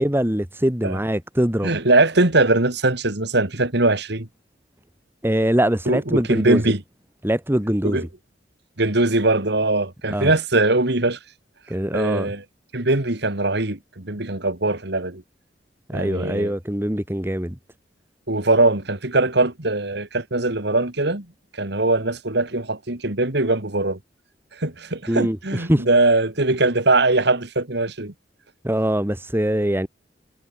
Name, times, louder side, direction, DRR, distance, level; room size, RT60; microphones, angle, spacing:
voice 1, 0.0-1.7 5.2-6.7 7.2-8.0 10.1-10.3 11.7-12.3 15.9-17.6 25.1-25.8 28.6-29.9, equal, 15° right, 2.3 m, -22 dB
voice 2, 1.6-4.3 5.9-6.8 7.8-8.1 8.8-11.2 11.9-12.4 12.7-15.2 15.9-16.5 18.3-21.2 21.6-24.0 24.6-28.1, right 2 dB, 65° right, 2.9 m, -21 dB
head